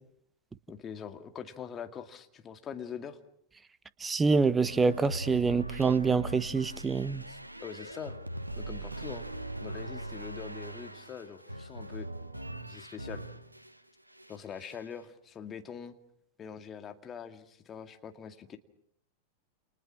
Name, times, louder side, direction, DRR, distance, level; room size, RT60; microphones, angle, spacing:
voice 1, 0.7-3.2 7.3-8.2 8.6-9.3 9.6-12.1 12.7-13.3 14.3-15.9 16.4-18.6, left 7 dB, 25° left, 7 dB, 2.2 m, -43 dB
voice 2, 4.0-7.2, right 4 dB, 15° right, 17 dB, 1.1 m, -26 dB
sound 1, 4.6-13.8 14.1-14.9, right 2 dB, 85° right, 1.3 m, -41 dB
29.5 x 29.0 x 6.0 m, 0.70 s
figure-of-eight pair, 90°, 0 cm